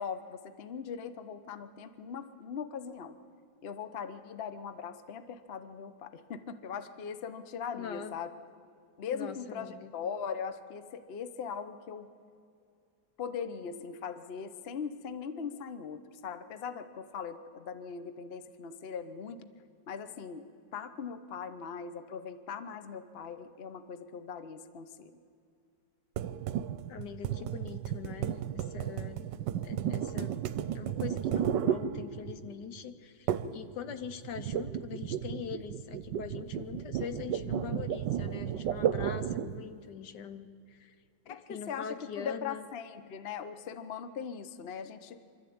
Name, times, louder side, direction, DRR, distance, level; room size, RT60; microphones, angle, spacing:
voice 1, 0.0-3.2 3.6-8.3 9.0-12.1 13.2-19.5 19.9-20.4 20.7-25.1 41.3-45.2, left 6 dB, 45° left, 10 dB, 0.8 m, -40 dB
voice 2, 7.7-8.2 9.1-9.9 26.9-29.3 29.6-30.4 30.7-40.9 41.3-42.7, left 8 dB, 70° left, 10 dB, 1.3 m, -43 dB
sound 1, 26.2-32.5 33.3-33.6 33.9-39.6, right 9 dB, 75° right, 1.3 m, -33 dB
25.5 x 13.0 x 8.6 m, 2.4 s
omnidirectional pair, 2.1 m